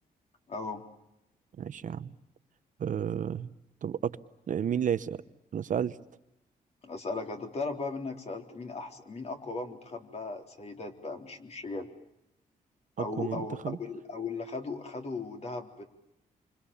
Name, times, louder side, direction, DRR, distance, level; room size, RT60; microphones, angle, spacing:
voice 1, 0.5-0.8 6.8-11.9 13.0-15.8, left 3 dB, 45° left, 4 dB, 3.8 m, -37 dB
voice 2, 1.6-2.1 2.8-3.5 3.8-4.2 4.5-5.2 5.5-6.0 13.0-13.8, right 8 dB, 55° right, 13 dB, 1.0 m, -31 dB
27.5 x 25.5 x 7.1 m, 0.87 s
cardioid pair, 105°, 16 cm